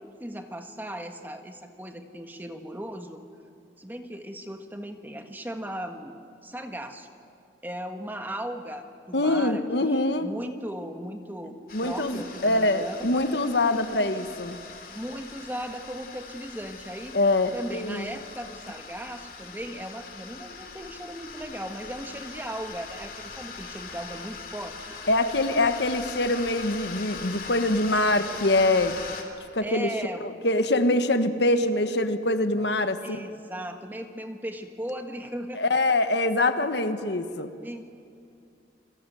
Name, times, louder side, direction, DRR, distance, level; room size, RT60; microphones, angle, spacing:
voice 1, 0.0-3.2 3.8-6.1 6.4-7.1 7.6-11.5 11.8-13.1 14.9-17.2 17.5-25.0 29.6-30.3 33.0-35.9 37.6-37.8, equal, 10° right, 5 dB, 1.5 m, -37 dB
voice 2, 9.1-10.3 11.7-14.6 17.1-18.1 25.1-29.0 29.5-29.9 30.2-33.2 35.5-37.5, left 2 dB, 70° left, 9 dB, 1.5 m, -24 dB
sound 1, 11.7-29.2, left 5 dB, 50° left, 2.9 m, -41 dB
29.0 x 21.0 x 9.3 m, 2.5 s
head